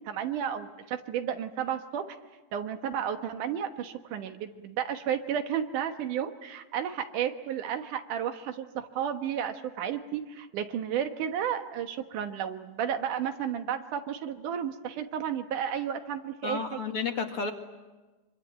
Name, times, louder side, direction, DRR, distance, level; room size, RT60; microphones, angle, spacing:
voice 1, 0.0-2.2 2.5-16.8, right 9 dB, 80° right, 7 dB, 2.9 m, -32 dB
voice 2, 16.4-17.5, left 4 dB, 50° left, 4 dB, 2.6 m, -31 dB
25.0 x 24.5 x 9.1 m, 1.2 s
omnidirectional pair, 3.6 m